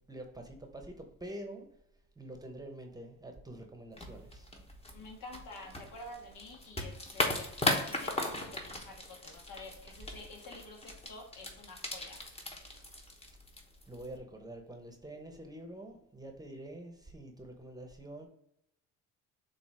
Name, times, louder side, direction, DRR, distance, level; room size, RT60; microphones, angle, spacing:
voice 1, 0.1-1.7 2.2-4.5 13.9-18.3, right 1 dB, 10° right, 4 dB, 1.0 m, -46 dB
sound 1, 3.9-14.2, left 1 dB, 15° left, 1.2 m, -38 dB
voice 2, 4.9-12.2, left 2 dB, 65° left, 1 dB, 1.7 m, -49 dB
7.1 x 2.7 x 4.8 m, 0.78 s
supercardioid pair, 90°, 34 cm